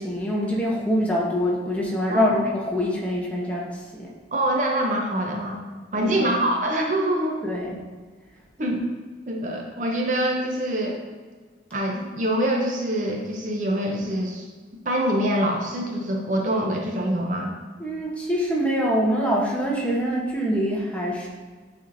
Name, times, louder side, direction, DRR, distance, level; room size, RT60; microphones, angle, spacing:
voice 1, 0.0-4.1 6.0-6.4 7.4-7.8 17.8-21.3, equal, 10° left, -4 dB, 1.0 m, -25 dB
voice 2, 2.1-2.4 4.3-5.6 5.9-7.5 8.6-8.9 9.3-11.0 11.7-14.5 14.8-17.5, right 1 dB, 45° right, 1 dB, 0.7 m, -25 dB
9.3 x 4.2 x 2.7 m, 1.4 s
head